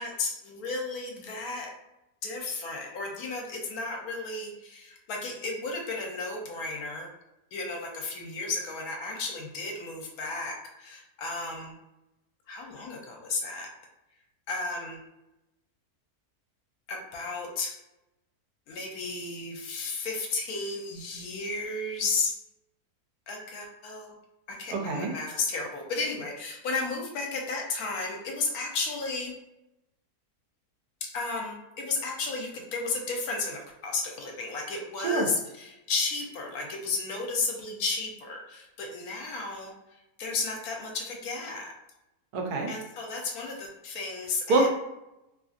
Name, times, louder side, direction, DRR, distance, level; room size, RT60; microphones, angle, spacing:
voice 1, 0.0-1.7 2.2-7.1 7.5-11.8 12.5-13.7 14.5-15.0 16.9-17.7 18.7-22.3 23.3-24.2 24.5-29.3 31.1-41.7 42.7-44.7, left 3 dB, 75° left, 1 dB, 1.1 m, -33 dB
voice 2, 24.7-25.1 35.0-35.3 42.3-42.7 44.5-44.7, right 3 dB, 80° right, 2 dB, 1.1 m, -25 dB
2.8 x 2.5 x 2.4 m, 0.92 s
omnidirectional pair, 1.6 m